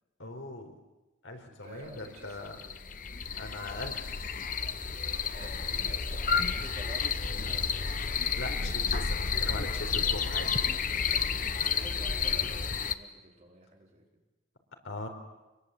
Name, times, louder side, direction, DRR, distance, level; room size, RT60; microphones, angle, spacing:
voice 1, 0.2-0.7 1.2-2.6 3.4-4.1 8.3-10.7 14.8-15.1, left 2 dB, 80° left, 4 dB, 4.3 m, -40 dB
voice 2, 1.4-2.8 5.4-8.1 11.1-14.1, right 1 dB, 35° right, 0 dB, 4.4 m, -51 dB
sound 1, 2.0-2.1 2.5-12.9, left 6 dB, 40° left, 0.9 m, -31 dB
25.0 x 23.0 x 8.5 m, 1.1 s
head